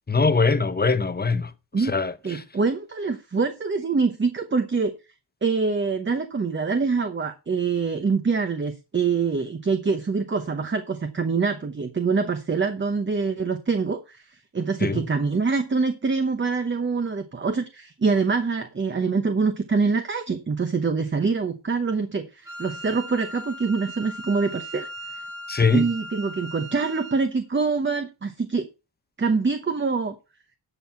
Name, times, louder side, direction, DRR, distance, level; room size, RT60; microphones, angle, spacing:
voice 1, 0.1-1.5 1.9-2.4 14.8-15.0 25.5-25.8, left 4 dB, 20° left, 0.8 m, -22 dB
voice 2, 2.2-4.9 5.4-14.2 14.5-25.2 25.7-28.7 29.2-30.1, right 4 dB, 25° right, 0.9 m, -25 dB
Wind instrument woodwind instrument, 22.5-27.3, equal, 40° right, 2.5 m, -38 dB
11.0 x 6.3 x 5.7 m
wide cardioid pair, 155°, 44 cm